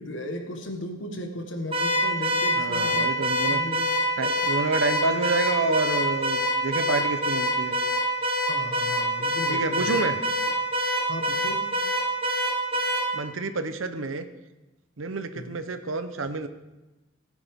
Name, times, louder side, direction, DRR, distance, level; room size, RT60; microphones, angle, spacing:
voice 1, 0.0-3.2 3.5-3.9 8.5-9.9 11.1-11.7 15.3-15.6, left 1 dB, 65° left, 5 dB, 1.5 m, -36 dB
Car / Alarm, 1.7-13.1, equal, 25° right, 1.3 m, -25 dB
voice 2, 2.6-3.6 4.2-7.8 9.5-10.2 13.1-14.3 15.0-16.5, right 3 dB, 80° right, 10 dB, 0.9 m, -28 dB
17.5 x 9.6 x 3.7 m, 1.1 s
head